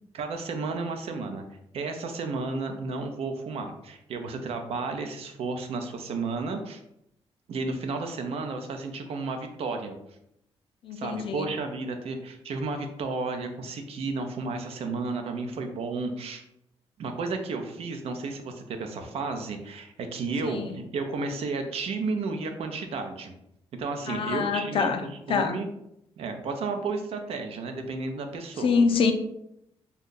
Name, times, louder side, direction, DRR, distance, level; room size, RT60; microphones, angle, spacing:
voice 1, 0.1-1.4 1.7-6.8 7.5-9.9 10.9-16.4 17.0-23.3 23.8-24.9 25.3-25.7 26.2-28.8, right 3 dB, 70° right, 5 dB, 0.5 m, -32 dB
voice 2, 10.8-11.5 20.4-20.7 24.1-25.6 28.6-29.1, left 5 dB, 60° left, 7 dB, 0.4 m, -25 dB
2.7 x 2.3 x 3.7 m, 0.80 s
cardioid pair, 90°, 10 cm